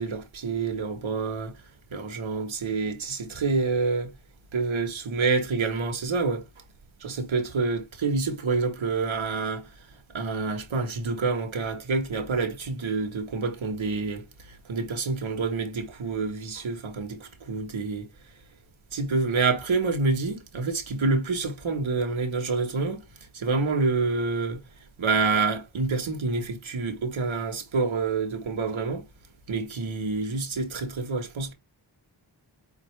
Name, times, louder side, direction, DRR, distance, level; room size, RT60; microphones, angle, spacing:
voice 1, 0.0-1.5 1.9-4.1 4.5-6.4 7.0-9.7 10.1-18.1 18.9-23.0 23.3-24.6 25.0-29.0 29.5-31.5, right 4 dB, 80° right, 1.2 m, -27 dB
5.4 x 2.5 x 3.1 m
cardioid pair, 50°, 47 cm